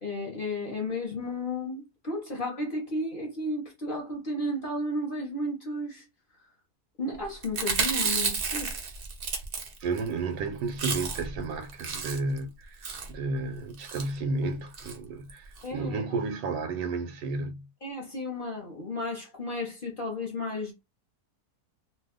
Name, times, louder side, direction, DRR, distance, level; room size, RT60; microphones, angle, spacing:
voice 1, 0.0-6.0 7.0-8.7 15.6-16.0 17.8-20.7, left 1 dB, 45° left, 0.8 m, -33 dB
Chewing mastication, 7.4-10.1 10.4-10.5 10.7-11.4 11.7-12.4 12.8-13.1 13.8-14.1 14.7-15.0 15.3-15.4 15.6-15.7, right 5 dB, 55° right, 0.6 m, -31 dB
voice 2, 9.8-17.7, right 3 dB, 75° right, 1.1 m, -32 dB
2.6 x 2.3 x 3.5 m
omnidirectional pair, 1.7 m